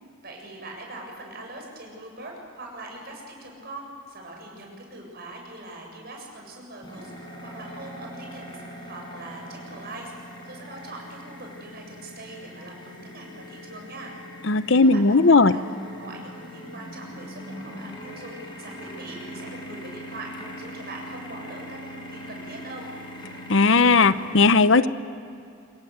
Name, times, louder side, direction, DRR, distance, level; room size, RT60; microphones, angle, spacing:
voice 1, 0.2-7.1 7.4-10.1 10.4-14.1 14.7-20.3 20.6-22.9, right 2 dB, 50° right, 1 dB, 7.6 m, -42 dB
sound 1, 6.8-24.4, equal, 25° left, 5.8 m, -41 dB
voice 2, 14.5-15.5 23.5-24.9, left 3 dB, 65° left, 13 dB, 0.8 m, -17 dB
27.0 x 23.0 x 8.0 m, 2.5 s
head